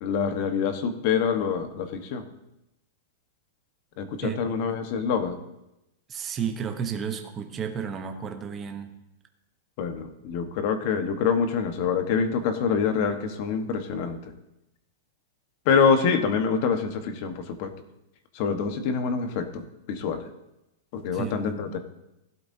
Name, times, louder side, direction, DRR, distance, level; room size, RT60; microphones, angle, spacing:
voice 1, 0.0-2.2 4.0-5.4 9.8-14.2 15.6-17.7 18.3-20.2 20.9-21.8, left 6 dB, 45° left, 8 dB, 1.3 m, -26 dB
voice 2, 4.2-4.7 6.1-9.0 21.1-21.4, right 7 dB, 20° right, 6 dB, 0.9 m, -32 dB
16.5 x 12.0 x 2.8 m, 0.90 s
supercardioid pair, 160°, 0 cm